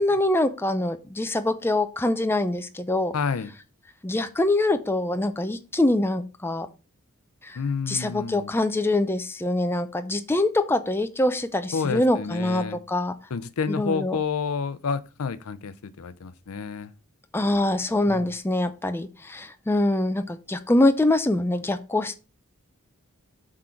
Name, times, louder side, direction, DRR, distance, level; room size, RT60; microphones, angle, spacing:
voice 1, 0.0-3.1 4.0-6.7 7.4-7.6 7.9-13.2 13.7-14.2 17.3-22.2, left 2 dB, 10° left, 0.4 m, -24 dB
voice 2, 3.1-3.5 7.5-8.5 11.7-12.8 13.3-16.9 18.1-18.3, left 5 dB, 70° left, 0.5 m, -29 dB
7.7 x 3.7 x 4.4 m
head